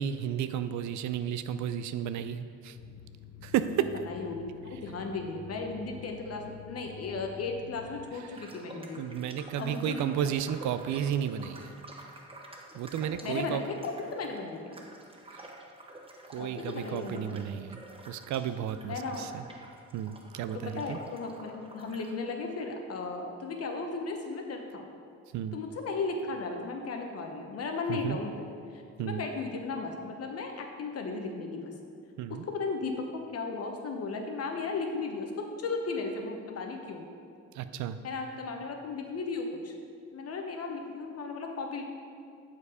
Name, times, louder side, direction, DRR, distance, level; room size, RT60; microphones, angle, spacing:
voice 1, 0.0-2.8 3.4-3.9 9.0-11.7 12.7-13.6 15.3-15.4 16.3-17.8 18.1-19.4 19.9-21.0 25.3-25.6 27.9-28.2 29.0-29.2 32.2-32.4 37.5-38.0, right 9 dB, 70° right, 11 dB, 0.4 m, -32 dB
sound 1, 2.8-8.1, left 6 dB, 75° left, 0.7 m, -48 dB
voice 2, 3.7-9.0 9.6-10.0 13.2-14.8 16.3-17.3 18.9-19.3 20.5-24.8 25.5-31.7 32.3-37.1 38.0-39.7 40.1-41.8, left 4 dB, 55° left, 3 dB, 1.0 m, -36 dB
sound 2, 8.3-22.1, right 2 dB, 20° right, 0.8 m, -50 dB
7.0 x 4.7 x 4.9 m, 2.3 s
cardioid pair, 90°, 30 cm